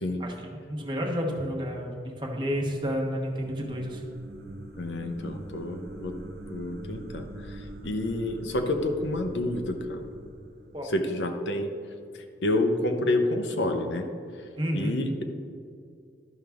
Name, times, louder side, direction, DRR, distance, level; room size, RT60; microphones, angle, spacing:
voice 1, 0.2-4.1 10.7-10.9 14.6-14.9, equal, 25° right, 0 dB, 1.0 m, -31 dB
sound 1, 2.1-11.4, right 1 dB, 55° right, 0.8 m, -44 dB
voice 2, 4.8-6.2 6.5-10.1 10.8-11.7 12.4-14.1 14.7-15.2, left 1 dB, 75° left, 5 dB, 0.8 m, -29 dB
11.0 x 6.3 x 3.5 m, 2.4 s
head